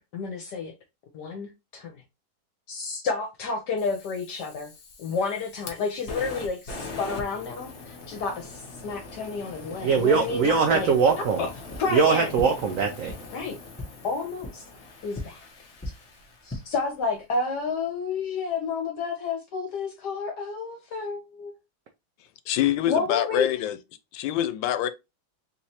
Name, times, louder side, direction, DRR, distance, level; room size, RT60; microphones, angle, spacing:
voice 1, 0.1-0.7 1.1-2.0 2.7-4.7 5.0-10.9 11.4-11.5 11.8-12.3 13.3-13.6 14.0-14.6 15.0-15.5 16.4-21.5 22.9-23.5, left 4 dB, 70° left, 1.2 m, -30 dB
Fire, 3.8-16.9, left 3 dB, 50° left, 0.9 m, -42 dB
voice 2, 9.8-11.4 11.9-13.1, right 5 dB, 75° right, 0.7 m, -21 dB
sound 1, 11.7-11.8 12.3-12.4 13.0-13.1 13.7-13.8 14.4-14.5 15.1-15.2 15.8-15.9 16.3-16.6, left 1 dB, 15° left, 0.5 m, -34 dB
voice 3, 22.5-23.8 24.1-24.9, left 12 dB, 90° left, 1.3 m, -25 dB
3.5 x 3.1 x 2.8 m
omnidirectional pair, 2.0 m